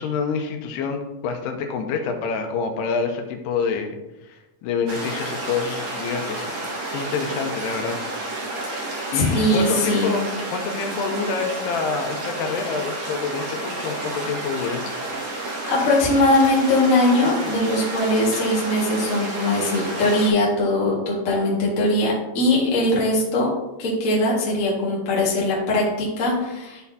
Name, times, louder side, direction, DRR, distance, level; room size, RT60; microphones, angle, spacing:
voice 1, 0.0-4.0 4.2-6.5 6.9-8.0 9.1-10.3 10.5-14.8, left 5 dB, 85° left, 5 dB, 2.8 m, -27 dB
sound 1, 4.9-20.3, right 2 dB, 60° right, 2.0 m, -30 dB
voice 2, 9.1-10.1 15.7-23.5 23.8-26.9, left 1 dB, 45° left, -5 dB, 1.0 m, -21 dB
12.0 x 4.2 x 2.8 m, 0.99 s
omnidirectional pair, 4.7 m